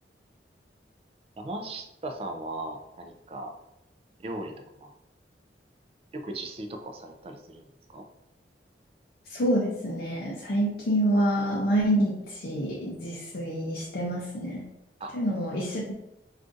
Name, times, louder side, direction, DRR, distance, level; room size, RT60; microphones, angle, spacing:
voice 1, 1.4-3.5 4.2-4.5 4.8-4.9 6.1-7.7 7.9-8.0 15.0-15.1, right 2 dB, 35° right, 4 dB, 0.3 m, -37 dB
voice 2, 9.3-14.6 15.1-15.9, equal, 55° left, -4 dB, 0.5 m, -27 dB
2.5 x 2.4 x 3.7 m, 0.88 s
head